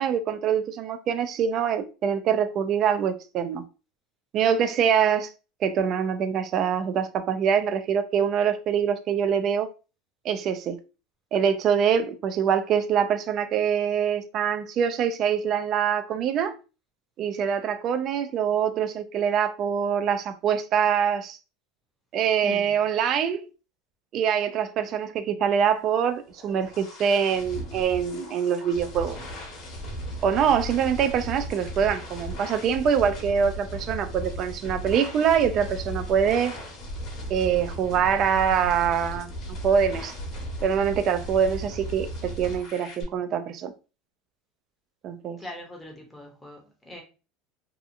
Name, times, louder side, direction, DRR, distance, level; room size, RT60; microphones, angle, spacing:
voice 1, 0.0-3.6 4.3-5.3 5.6-9.7 10.2-10.8 11.3-16.6 17.2-21.4 22.1-23.5 24.1-29.2 30.2-36.5 37.3-39.3 39.6-40.1 40.6-43.7 45.0-45.4, right 7 dB, 40° right, 0.3 m, -24 dB
voice 2, 22.4-22.8 45.4-47.0, left 1 dB, 5° left, 0.7 m, -41 dB
sound 1, 26.1-43.0, equal, 40° left, 0.9 m, -36 dB
2.7 x 2.4 x 2.4 m
supercardioid pair, 150°, 0 cm